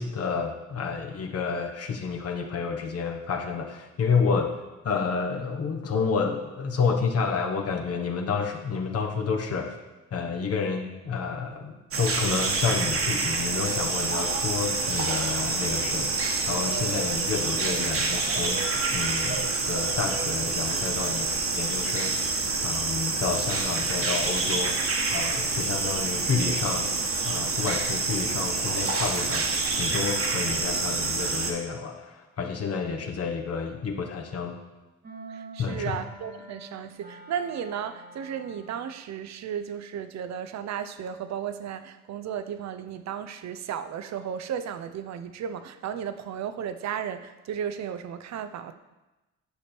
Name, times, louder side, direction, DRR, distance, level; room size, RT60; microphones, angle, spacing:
voice 1, 0.0-9.7 10.1-16.1 16.5-22.1 22.6-26.9 27.2-29.4 29.8-34.6 35.6-36.0, left 5 dB, 55° left, 2 dB, 1.2 m, -30 dB
sound 1, 11.9-31.5, right 3 dB, 45° right, 1.4 m, -27 dB
sound 2, 35.0-38.9, right 2 dB, 30° right, 1.3 m, -46 dB
voice 2, 35.3-48.7, right 8 dB, 60° right, 11 dB, 0.6 m, -34 dB
10.5 x 5.0 x 4.4 m, 1.1 s
cardioid pair, 90°, 30 cm